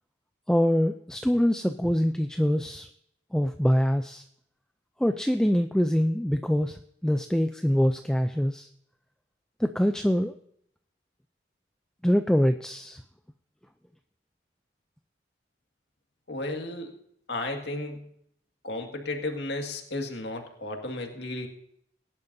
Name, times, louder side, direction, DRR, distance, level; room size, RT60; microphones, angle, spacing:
voice 1, 0.5-2.9 3.3-4.2 5.0-8.7 9.6-10.3 12.0-13.0, equal, 5° left, 7 dB, 0.4 m, -24 dB
voice 2, 16.3-17.0 17.3-18.1 18.6-21.5, left 2 dB, 70° left, 3 dB, 2.0 m, -33 dB
21.0 x 10.5 x 2.7 m, 0.70 s
head